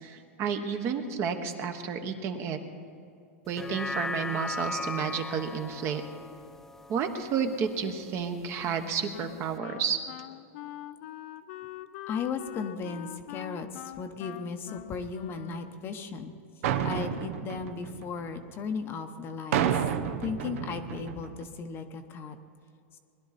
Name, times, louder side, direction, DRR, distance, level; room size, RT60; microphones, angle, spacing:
voice 1, 0.0-2.6 3.5-6.0 6.9-10.0, right 6 dB, 35° right, 6 dB, 1.2 m, -31 dB
sound 1, 3.5-8.0 8.4-8.5, left 3 dB, 5° left, 0.3 m, -38 dB
Wind instrument woodwind instrument, 8.7-16.1, left 13 dB, 60° left, 0.6 m, -44 dB
voice 2, 12.1-16.3 16.8-19.6 20.2-22.4, left 5 dB, 30° left, 7 dB, 0.9 m, -36 dB
sound 2, 16.6-18.6 19.5-21.4, right 9 dB, 70° right, 0.9 m, -30 dB
20.5 x 11.5 x 4.2 m, 2.5 s
supercardioid pair, 135°, 8 cm